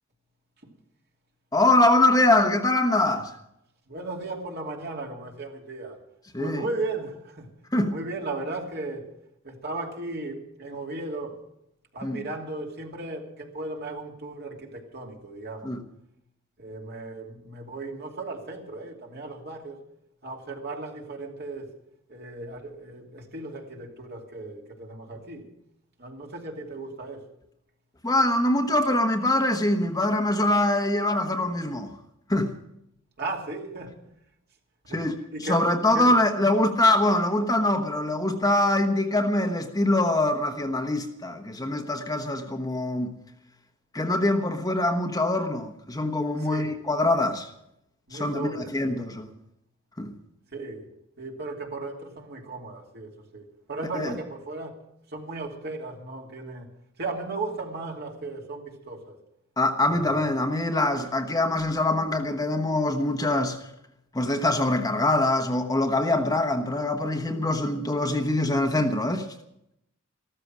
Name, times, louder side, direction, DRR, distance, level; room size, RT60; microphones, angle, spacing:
voice 1, 1.5-3.3 6.3-6.6 7.7-8.0 12.0-12.2 15.6-15.8 28.0-32.0 32.3-32.5 34.9-43.1 43.9-47.5 48.1-49.3 50.0-50.2 53.9-54.1 59.6-63.6 64.1-69.3, left 1 dB, 15° left, 1.1 m, -24 dB
voice 2, 3.9-6.0 6.4-7.5 7.9-9.1 9.4-11.4 11.9-15.7 16.6-19.8 20.2-21.7 22.1-25.5 26.0-27.3 33.2-34.0 34.8-35.6 35.9-36.1 46.4-46.7 48.1-49.1 50.5-50.9 51.2-54.8 55.1-56.7 57.0-59.2 59.9-60.2, right 2 dB, 50° right, 2.7 m, -36 dB
14.5 x 13.5 x 6.2 m
head